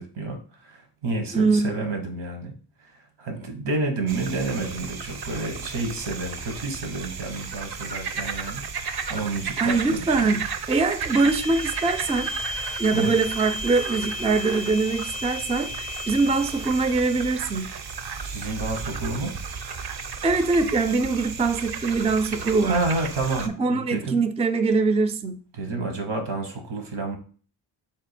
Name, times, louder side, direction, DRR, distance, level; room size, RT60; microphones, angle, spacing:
voice 1, 0.0-2.5 2.8-2.9 3.2-10.4 12.9-13.2 18.2-19.4 22.6-24.2 25.5-27.2, right 3 dB, 80° right, 1.1 m, -30 dB
voice 2, 1.3-1.9 9.6-12.3 12.8-17.7 20.2-22.8 23.6-25.4, right 3 dB, 15° right, 0.4 m, -23 dB
sound 1, 4.1-23.5, right 5 dB, 55° right, 0.6 m, -34 dB
sound 2, 11.1-17.4, left 2 dB, 35° left, 0.6 m, -35 dB
3.5 x 2.4 x 4.3 m
cardioid pair, 40°, 46 cm